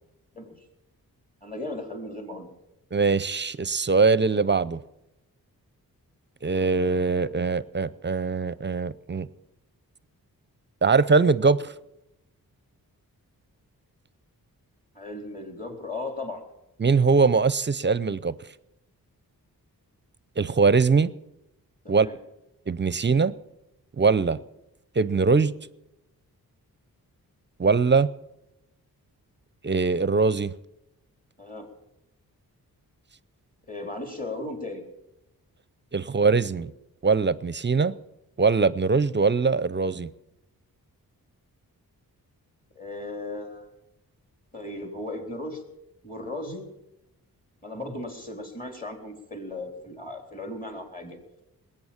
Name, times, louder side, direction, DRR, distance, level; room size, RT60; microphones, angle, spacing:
voice 1, 1.4-2.5 14.9-16.4 21.8-22.2 31.4-31.7 33.7-34.8 42.8-43.7 44.5-45.6 46.0-46.6 47.6-51.2, left 2 dB, 20° left, 4.0 m, -36 dB
voice 2, 2.9-4.8 6.4-9.3 10.8-11.7 16.8-18.3 20.4-21.1 21.9-22.1 22.7-23.3 24.0-24.4 25.0-25.5 27.6-28.1 29.6-30.5 35.9-36.7 37.0-37.9 38.4-40.1, right 4 dB, 30° right, 0.6 m, -22 dB
20.0 x 8.8 x 7.3 m
cardioid pair, 65°, 37 cm